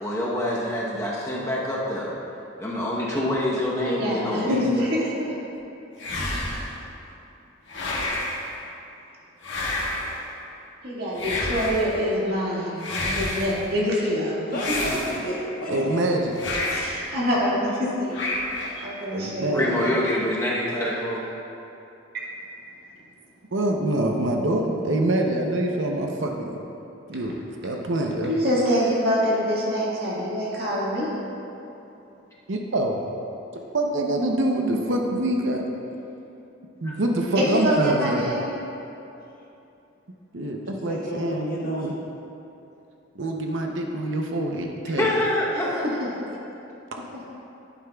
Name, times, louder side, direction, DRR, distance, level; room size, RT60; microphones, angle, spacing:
voice 1, 0.0-2.1 2.6-4.6 19.5-21.2 36.8-37.0 44.9-45.8, left 1 dB, 15° left, -5 dB, 0.9 m, -26 dB
voice 2, 3.8-5.4 10.8-14.3 16.7-18.2 18.8-19.9 28.3-31.1 37.4-38.5 45.6-45.9, equal, 50° right, -6 dB, 1.9 m, -25 dB
sound 1, 6.0-6.8 7.7-8.5 9.4-10.2 11.2-11.9 12.8-13.6 14.5-15.4 16.3-17.0 18.1-18.8, left 2 dB, 60° left, 1.5 m, -29 dB
voice 3, 14.5-16.0 40.7-41.8, equal, 45° left, -5 dB, 1.5 m, -32 dB
voice 4, 15.7-16.4 19.1-19.6 23.5-26.6 27.1-27.4 27.6-28.3 32.5-33.0 33.7-35.6 36.8-38.3 40.3-41.9 43.1-45.1, right 1 dB, 65° right, 2 dB, 0.7 m, -25 dB
11.0 x 9.5 x 2.3 m, 2.8 s
head